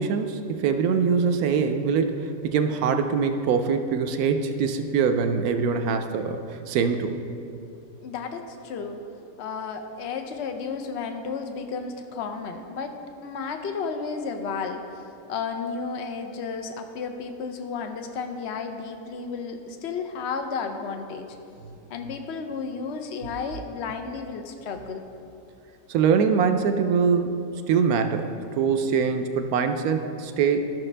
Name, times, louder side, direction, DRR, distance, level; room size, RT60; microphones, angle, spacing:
voice 1, 0.0-6.4 6.7-7.2 25.9-30.6, right 6 dB, 70° right, 7 dB, 1.0 m, -23 dB
voice 2, 8.0-9.0 9.4-21.3 21.9-25.0, left 5 dB, 70° left, 6 dB, 0.6 m, -33 dB
14.0 x 6.1 x 3.3 m, 2.7 s
omnidirectional pair, 1.8 m